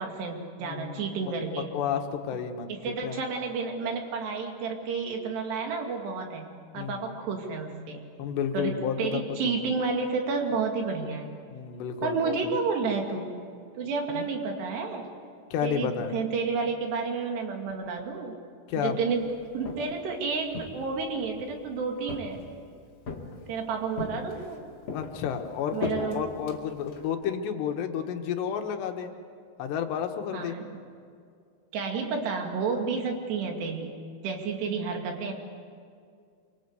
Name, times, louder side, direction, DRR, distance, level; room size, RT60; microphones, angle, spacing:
voice 1, 0.0-1.7 2.7-6.5 6.7-8.0 8.5-11.3 12.0-13.3 13.8-15.1 15.6-18.3 18.7-19.2 19.5-22.4 23.5-24.7 25.7-26.2 30.3-30.6 31.7-33.9 34.2-35.3, right 4 dB, 75° right, 2 dB, 4.5 m, -31 dB
voice 2, 0.6-3.2 6.8-7.1 8.2-9.4 11.5-12.4 14.1-14.3 15.5-16.2 18.7-19.0 24.9-29.1 29.6-30.6, left 8 dB, 80° left, 5 dB, 3.5 m, -31 dB
Walk footsteps, 19.4-20.1 20.5-21.5 22.1-22.7 23.1-23.6 24.0-24.6 24.9-27.1, left 3 dB, 45° left, 3.1 m, -38 dB
27.0 x 24.0 x 8.1 m, 2.3 s
omnidirectional pair, 4.9 m